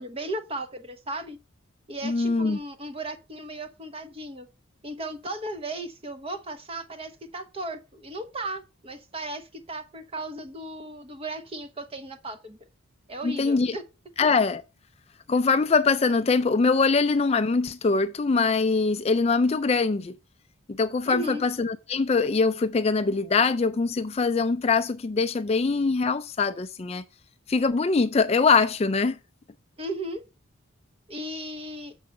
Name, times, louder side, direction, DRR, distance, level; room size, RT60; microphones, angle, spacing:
voice 1, 0.0-1.4 1.9-4.5 4.8-12.6 13.1-13.8 21.1-21.4 29.8-30.2 31.1-31.9, right 1 dB, 25° right, 0.9 m, -36 dB
voice 2, 2.0-2.6 13.2-13.8 14.2-14.6 15.3-20.1 20.7-27.0 27.5-29.2, left 4 dB, 30° left, 0.4 m, -23 dB
7.1 x 4.7 x 6.3 m
head